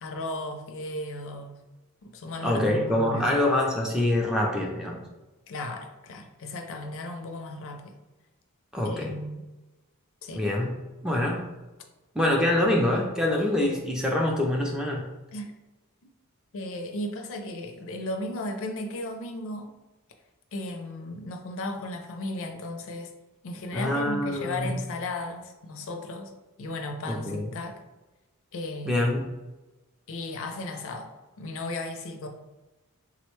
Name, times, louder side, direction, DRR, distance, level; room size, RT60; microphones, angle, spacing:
voice 1, 0.0-1.6 2.0-3.4 5.5-8.0 8.8-9.4 10.2-10.4 15.3-15.5 16.5-19.7 20.5-23.1 23.4-26.3 26.6-27.8 28.5-29.0 30.1-31.1 31.4-32.3, left 1 dB, 65° left, 5 dB, 0.4 m, -35 dB
voice 2, 2.4-5.0 8.7-9.1 10.3-10.7 11.0-11.5 12.1-15.1 23.7-24.7 27.1-27.5 28.9-29.2, left 1 dB, 5° right, -1 dB, 0.4 m, -25 dB
3.7 x 2.1 x 3.0 m, 1.1 s
head